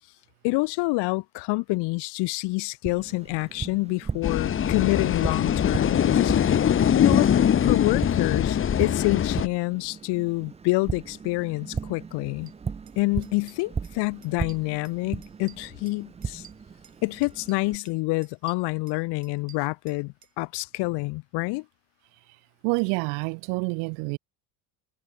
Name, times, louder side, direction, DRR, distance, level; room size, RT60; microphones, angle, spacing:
voice 1, 0.4-6.3 6.9-7.3 7.6-12.5 13.0-16.4 17.0-21.6, left 24 dB, 70° left, 1.6 m, -27 dB
Tap, 2.9-17.8, right 5 dB, 15° right, 0.5 m, -37 dB
sound 1, 4.2-9.5, left 9 dB, 30° left, 0.9 m, -22 dB
sound 2, 12.5-12.6 12.9-13.0 13.2-14.0 14.2-15.0 15.2-17.0 17.2-18.0 18.2-20.3, right 9 dB, 40° right, 5.1 m, -52 dB
voice 2, 22.6-24.2, right 40 dB or more, 75° right, 0.9 m, -27 dB
supercardioid pair, 95°, 43 cm